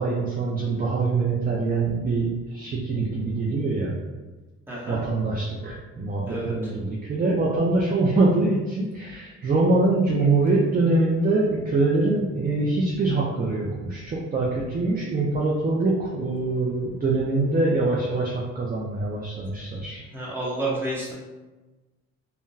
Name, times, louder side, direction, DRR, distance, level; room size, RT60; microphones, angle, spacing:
voice 1, 0.0-3.9 4.9-20.0, right 3 dB, 30° right, -4 dB, 0.5 m, -24 dB
voice 2, 4.7-5.0 6.3-6.7 20.1-21.1, right 1 dB, 5° right, -7 dB, 1.1 m, -30 dB
3.6 x 2.2 x 2.6 m, 1.2 s
cardioid pair, 90°, 30 cm